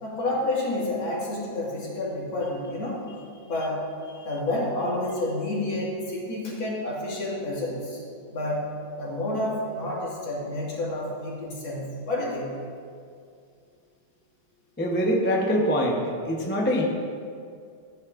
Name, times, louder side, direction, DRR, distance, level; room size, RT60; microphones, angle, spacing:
voice 1, 0.0-3.0 3.5-3.9 4.2-8.0 8.3-8.7 9.0-12.6, left 1 dB, 70° left, -5 dB, 2.8 m, -29 dB
voice 2, 14.8-16.8, equal, 15° left, -1 dB, 0.4 m, -24 dB
14.5 x 9.7 x 2.6 m, 2.3 s
omnidirectional pair, 2.3 m